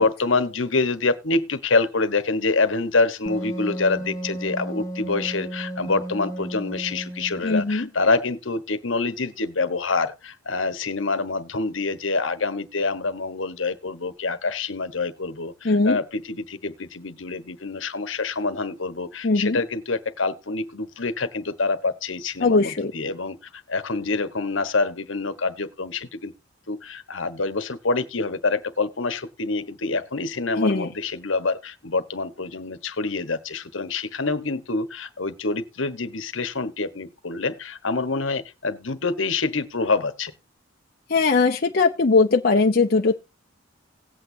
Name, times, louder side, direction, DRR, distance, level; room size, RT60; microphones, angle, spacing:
voice 1, 0.0-23.4 23.7-26.3 26.7-40.3, left 3 dB, 70° left, 1.2 m, -26 dB
Wind instrument woodwind instrument, 3.3-7.7, right 1 dB, 15° left, 1.6 m, -33 dB
voice 2, 7.4-7.9 15.6-16.0 19.2-19.6 22.4-22.9 30.5-30.9 41.1-43.1, left 3 dB, 50° left, 0.8 m, -20 dB
18.0 x 8.4 x 2.7 m
head